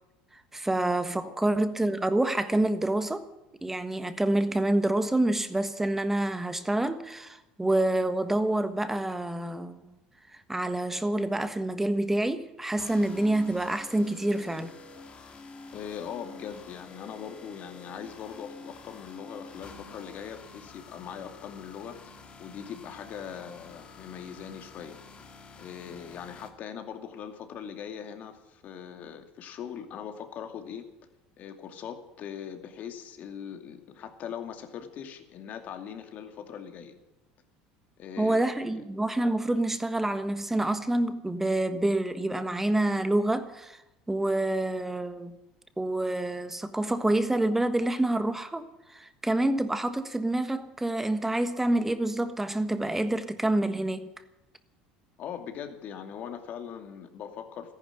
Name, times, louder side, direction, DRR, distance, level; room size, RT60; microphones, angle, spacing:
voice 1, 0.5-3.3 3.6-9.9 10.5-14.7 38.2-43.8 44.1-45.4 45.8-54.1, right 1 dB, 10° right, 1.3 m, -27 dB
sound 1, 12.8-26.5, left 3 dB, 35° left, 2.6 m, -48 dB
voice 2, 15.7-22.1 22.4-25.0 25.6-30.8 31.4-36.9 38.0-38.8 55.2-57.7, left 8 dB, 50° left, 2.4 m, -41 dB
14.5 x 11.0 x 9.2 m
supercardioid pair, 100°, 4 cm